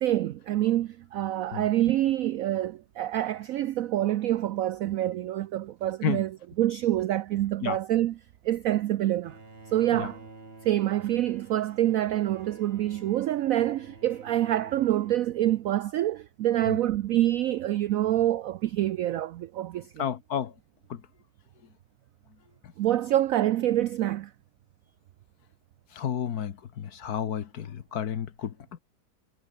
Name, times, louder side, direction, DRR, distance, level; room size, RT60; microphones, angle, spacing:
voice 1, 0.0-8.2 8.4-9.4 9.7-10.2 10.6-20.1 22.8-24.3, right 13 dB, 75° right, 0.7 m, -26 dB
Bowed string instrument, 9.2-16.0, right 3 dB, 30° right, 3.3 m, -50 dB
voice 2, 20.0-20.5 20.9-21.0 26.0-28.5, left 8 dB, 60° left, 1.6 m, -31 dB
omnidirectional pair, 2.0 m